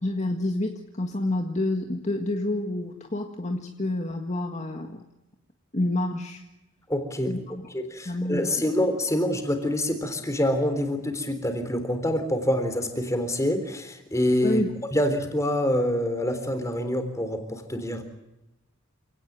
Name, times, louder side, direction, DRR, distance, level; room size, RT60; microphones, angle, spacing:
voice 1, 0.0-5.0 5.7-6.4 7.3-7.6 8.0-8.7 14.4-14.7, left 1 dB, 35° left, 3 dB, 1.7 m, -28 dB
voice 2, 6.9-7.4 7.7-14.6 14.9-18.0, left 1 dB, 15° left, 7 dB, 3.7 m, -26 dB
28.5 x 18.0 x 9.4 m, 0.98 s
head